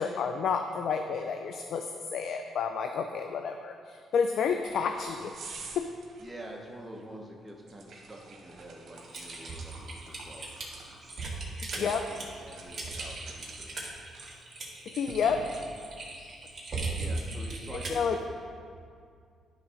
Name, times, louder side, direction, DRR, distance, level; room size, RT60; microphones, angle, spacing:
voice 1, 0.0-1.9 2.1-5.3 5.8-5.9 11.8-12.0 14.9-15.4 17.9-18.2, left 6 dB, 70° left, 6 dB, 0.4 m, -30 dB
sound 1, 4.4-15.9, right 3 dB, 60° right, 1.4 m, -49 dB
voice 2, 6.2-10.5 11.2-13.8 17.0-18.2, right 1 dB, 10° right, -2 dB, 0.9 m, -47 dB
Typing, 9.1-18.1, right 3 dB, 40° right, 2.0 m, -38 dB
10.5 x 3.6 x 5.0 m, 2.3 s
cardioid pair, 90°, 0 cm